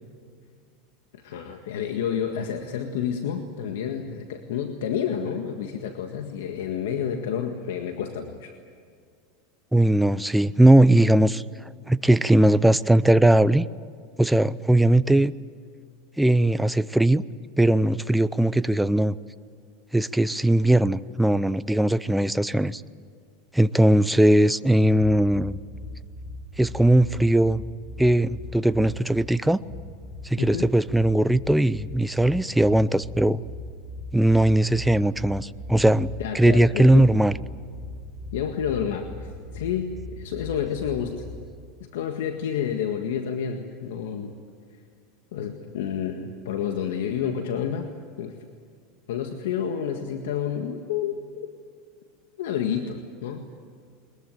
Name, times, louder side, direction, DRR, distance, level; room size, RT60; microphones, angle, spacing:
voice 1, 1.1-8.5 30.4-30.7 36.2-37.1 38.3-41.2 41.8-44.3 45.3-47.9 48.2-48.4 49.1-51.5 52.4-53.5, left 8 dB, 85° left, 5 dB, 1.8 m, -29 dB
voice 2, 9.7-11.4 11.9-13.7 14.2-15.3 16.2-17.2 17.6-19.2 19.9-22.8 23.5-25.6 26.6-27.6 28.0-29.6 30.2-33.4 34.1-37.3, right 1 dB, 5° right, 15 dB, 0.6 m, -19 dB
sound 1, 25.3-41.4, left 1 dB, 45° left, 4.9 m, -39 dB
22.5 x 21.5 x 9.3 m, 2.2 s
supercardioid pair, 130°, 0 cm